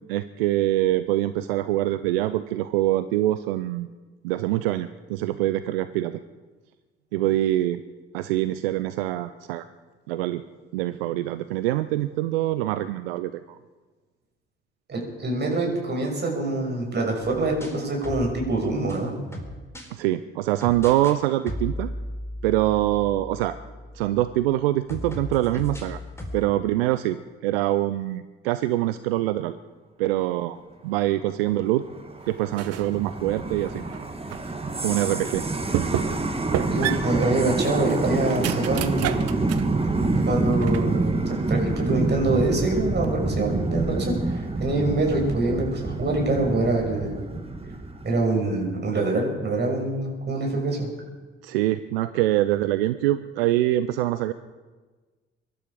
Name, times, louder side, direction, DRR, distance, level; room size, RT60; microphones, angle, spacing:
voice 1, 0.0-3.9 4.2-6.2 7.1-7.8 8.1-9.7 10.1-10.4 10.7-13.6 19.9-21.9 22.4-23.6 23.9-26.0 26.3-27.2 27.4-29.5 30.0-30.6 30.8-31.8 32.3-33.8 34.8-35.4 51.4-54.3, right 15 dB, 75° right, 12 dB, 0.6 m, -24 dB
voice 2, 14.9-19.1 36.7-39.2 40.3-47.2 48.0-50.9, right 2 dB, 35° right, 0 dB, 6.2 m, -25 dB
sound 1, 17.2-19.9 20.6-21.2 21.5-24.5 24.9-26.5, left 1 dB, 10° left, 4.0 m, -36 dB
sound 2, 31.6-48.2, right 2 dB, 20° right, 2.1 m, -27 dB
sound 3, 32.5-33.0 33.4-34.5 35.0-35.1 35.7-36.3 36.5-39.7 40.1-41.0, right 11 dB, 55° right, 1.0 m, -30 dB
24.5 x 12.0 x 4.9 m, 1.3 s
figure-of-eight pair, 50°, 30 cm